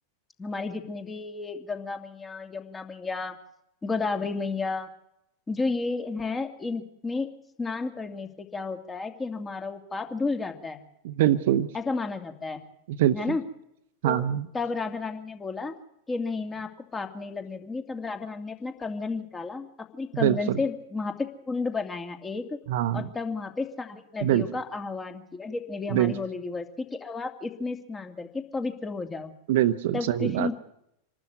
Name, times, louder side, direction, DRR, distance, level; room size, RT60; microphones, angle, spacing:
voice 1, 0.4-3.4 3.8-4.9 5.5-7.3 7.6-10.8 11.7-12.6 13.1-13.4 14.0-14.2 14.5-15.7 16.1-19.7 19.9-21.1 21.5-22.6 22.9-29.3 29.9-30.5, left 3 dB, 15° left, 6 dB, 2.5 m, -32 dB
voice 2, 11.0-11.7 12.9-13.4 14.0-14.5 20.2-20.6 22.7-23.1 24.2-24.5 25.9-26.1 29.5-30.5, right 12 dB, 55° right, 13 dB, 1.0 m, -24 dB
26.0 x 12.5 x 9.5 m, 0.80 s
figure-of-eight pair, 90°, 0 cm